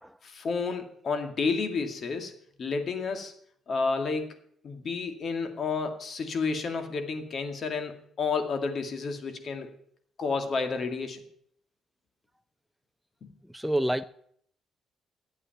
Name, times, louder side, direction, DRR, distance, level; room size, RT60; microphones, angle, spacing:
voice 1, 0.2-2.3 2.6-3.3 3.7-4.4 4.6-9.7 10.2-11.2 13.2-13.3, left 4 dB, 55° left, 2.1 m, -31 dB
voice 2, 13.5-14.0, right 1 dB, ahead, 0.5 m, -27 dB
12.0 x 8.3 x 9.0 m
cardioid pair, 90°, 0 cm